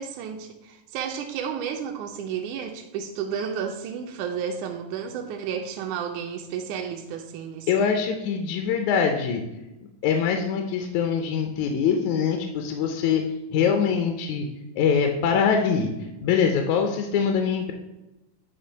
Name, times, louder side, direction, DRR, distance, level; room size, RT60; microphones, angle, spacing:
voice 1, 0.0-7.7, right 7 dB, 80° right, 3 dB, 1.9 m, -32 dB
voice 2, 7.7-9.4 10.0-13.2 13.5-14.5 14.8-17.7, left 6 dB, 75° left, 4 dB, 1.8 m, -23 dB
9.6 x 3.2 x 5.6 m, 0.96 s
omnidirectional pair, 3.7 m